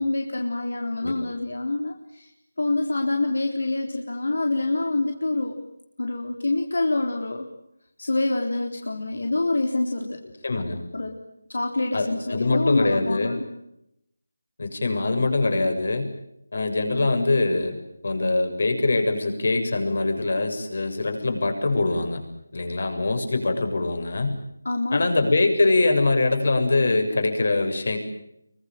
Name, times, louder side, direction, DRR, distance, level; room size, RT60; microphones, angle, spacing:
voice 1, 0.0-2.3 2.6-5.6 6.0-7.5 8.0-10.2 10.9-11.2 11.5-13.4 24.6-25.0, left 2 dB, 80° left, 2 dB, 3.8 m, -26 dB
voice 2, 10.4-10.8 11.9-13.3 14.6-16.1 16.5-17.8 18.0-22.2 22.5-24.4 24.9-28.0, left 2 dB, 55° left, 6 dB, 7.0 m, -23 dB
25.5 x 24.0 x 9.2 m, 0.80 s
figure-of-eight pair, 170°, 0 cm